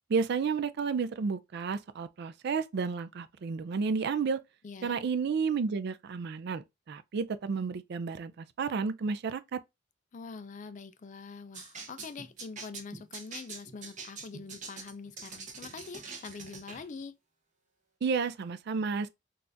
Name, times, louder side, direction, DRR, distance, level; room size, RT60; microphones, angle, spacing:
voice 1, 0.1-4.4 4.8-9.6 18.0-19.1, right 5 dB, 60° right, 0.4 m, -31 dB
voice 2, 4.6-5.0 10.1-17.1, left 4 dB, 40° left, 0.4 m, -44 dB
sound 1, 11.5-16.9, right 4 dB, 40° right, 0.9 m, -44 dB
3.9 x 2.4 x 2.6 m
head